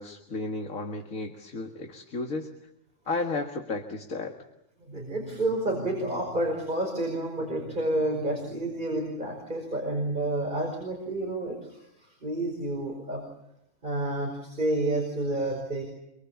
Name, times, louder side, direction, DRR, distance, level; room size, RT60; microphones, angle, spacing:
voice 1, 0.0-2.5 3.1-4.4, left 3 dB, 75° left, 3 dB, 2.3 m, -33 dB
voice 2, 4.9-11.8 12.2-13.2 13.8-15.8, right 1 dB, 35° right, 2 dB, 5.3 m, -29 dB
26.0 x 24.5 x 7.1 m, 0.86 s
omnidirectional pair, 1.4 m